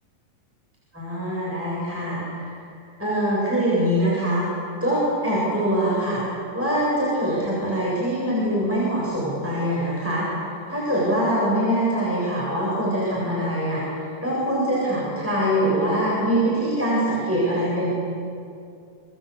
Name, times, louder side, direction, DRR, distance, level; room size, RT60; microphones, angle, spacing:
voice 1, 0.9-2.4 3.0-4.5 4.8-6.2 6.5-10.3 10.7-17.9, equal, 5° right, -6 dB, 7.4 m, -23 dB
27.0 x 24.0 x 8.4 m, 2.4 s
omnidirectional pair, 4.0 m